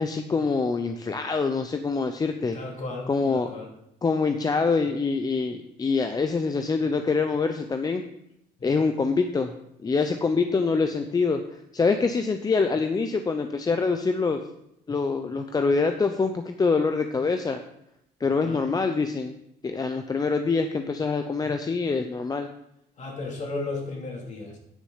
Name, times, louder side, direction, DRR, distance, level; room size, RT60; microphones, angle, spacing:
voice 1, 0.0-2.6 3.1-3.5 4.0-8.0 8.6-9.5 9.8-11.4 11.7-14.4 14.9-17.6 18.2-19.4 19.6-22.5, left 4 dB, 20° left, 7 dB, 0.6 m, -25 dB
voice 2, 2.5-3.7 8.6-8.8 18.4-18.7 23.0-24.6, left 3 dB, 45° left, 0 dB, 2.8 m, -35 dB
9.8 x 6.3 x 5.6 m, 0.79 s
cardioid pair, 110°, 17 cm